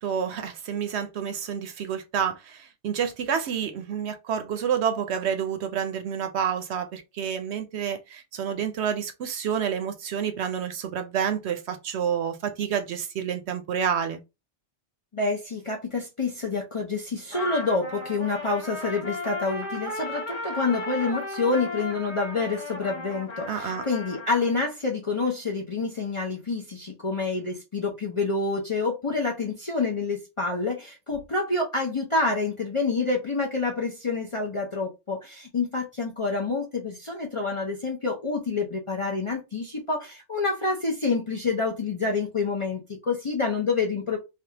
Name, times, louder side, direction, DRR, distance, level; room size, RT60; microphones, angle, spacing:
voice 1, 0.0-14.2 23.5-23.8, right 8 dB, 70° right, 0.8 m, -29 dB
voice 2, 15.1-44.2, left 3 dB, 40° left, 0.5 m, -28 dB
Trumpet, 17.3-24.5, left 2 dB, 75° left, 1.5 m, -35 dB
3.3 x 2.3 x 2.8 m
omnidirectional pair, 1.2 m